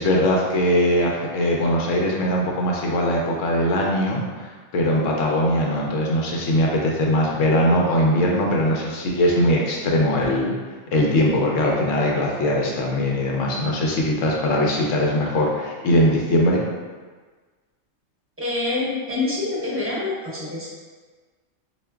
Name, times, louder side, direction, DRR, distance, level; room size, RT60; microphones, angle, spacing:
voice 1, 0.0-10.5 10.9-16.6, left 1 dB, 90° left, -2 dB, 1.0 m, -21 dB
voice 2, 18.4-20.7, left 2 dB, 10° right, -8 dB, 0.8 m, -26 dB
4.7 x 2.5 x 2.2 m, 1.4 s
omnidirectional pair, 1.3 m